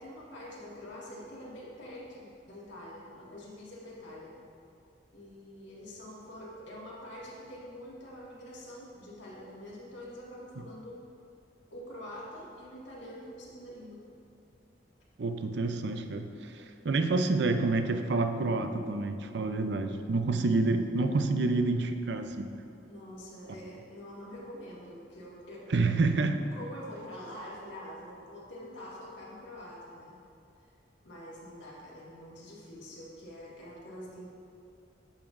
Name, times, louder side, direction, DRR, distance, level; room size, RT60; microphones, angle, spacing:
voice 1, 0.0-4.4 5.1-11.0 11.7-14.0 22.9-25.7 26.5-30.2 31.0-34.3, equal, 75° left, -5 dB, 1.8 m, -45 dB
voice 2, 15.2-22.5 25.7-26.4, right 3 dB, 65° right, 8 dB, 0.5 m, -28 dB
10.5 x 7.1 x 2.6 m, 2.5 s
head